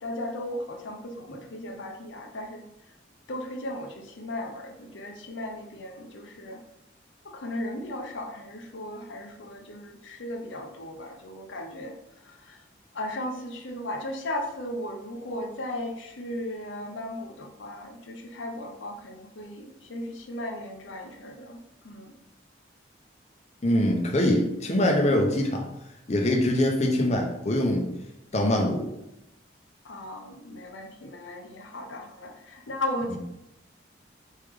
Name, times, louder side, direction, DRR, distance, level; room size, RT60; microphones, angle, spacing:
voice 1, 0.0-2.6 3.3-6.6 7.2-11.9 12.2-12.6 12.9-22.1 29.8-33.2, left 1 dB, 80° left, 3 dB, 0.6 m, -36 dB
voice 2, 23.6-25.7 26.1-27.9 28.3-28.8, left 1 dB, 35° left, 1 dB, 0.6 m, -23 dB
4.4 x 3.3 x 3.5 m, 0.87 s
head